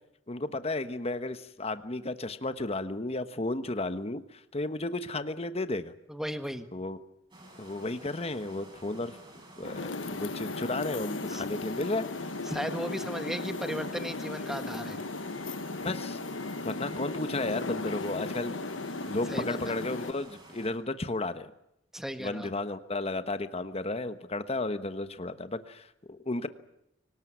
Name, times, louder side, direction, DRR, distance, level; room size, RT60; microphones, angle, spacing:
voice 1, 0.3-5.9 6.7-7.0 7.6-9.2 9.6-12.1 15.8-16.2 16.6-18.5 19.1-21.5 22.2-26.5, left 2 dB, 30° left, 11 dB, 1.1 m, -33 dB
voice 2, 6.1-6.7 11.3-11.4 12.5-15.0 19.3-19.7 21.9-22.5, equal, ahead, 8 dB, 1.4 m, -36 dB
sound 1, 7.3-20.7, right 1 dB, 25° right, 7.0 m, -51 dB
sound 2, 9.6-20.1, left 3 dB, 80° left, 1.3 m, -36 dB
24.5 x 19.0 x 9.4 m, 0.81 s
head